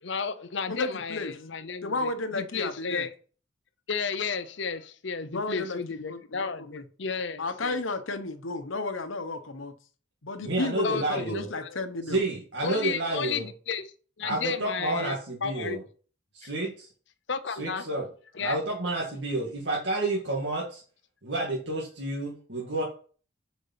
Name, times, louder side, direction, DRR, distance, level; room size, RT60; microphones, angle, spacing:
voice 1, 0.0-2.1 2.4-3.1 3.9-7.8 10.8-11.8 12.6-13.9 14.2-15.8 17.3-17.9 18.4-18.6, left 5 dB, 65° left, 0.7 m, -33 dB
voice 2, 0.7-1.3 1.8-3.1 5.3-6.8 7.4-9.7 10.2-12.2, left 3 dB, 90° left, 1.1 m, -33 dB
voice 3, 10.4-11.5 12.1-13.5 14.2-15.8 16.3-16.9 17.6-18.1 18.4-20.8 21.2-22.8, right 2 dB, 65° right, 2.0 m, -30 dB
7.2 x 5.4 x 5.8 m
head